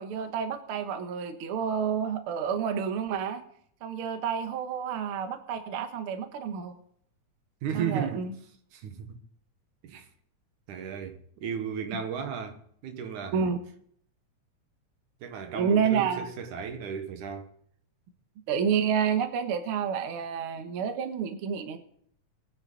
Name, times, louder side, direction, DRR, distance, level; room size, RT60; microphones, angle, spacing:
voice 1, 0.0-3.4 3.8-6.7 7.7-8.3 13.3-13.6 15.5-16.3 18.5-21.8, right 7 dB, 55° right, 1.7 m, -29 dB
voice 2, 7.6-8.3 8.7-9.2 9.8-10.1 10.7-13.4 15.2-17.5, right 7 dB, 85° right, 2.7 m, -35 dB
20.5 x 9.7 x 4.0 m
omnidirectional pair, 3.4 m